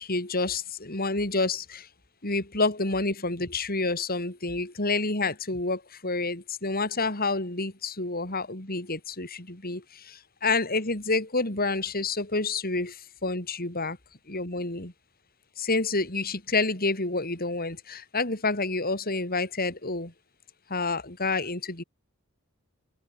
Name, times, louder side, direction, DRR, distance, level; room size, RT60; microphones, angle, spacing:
voice 1, 0.0-1.9 2.2-14.0 14.3-14.9 15.6-20.1 20.7-21.8, left 3 dB, 45° left, 5.2 m, -29 dB
head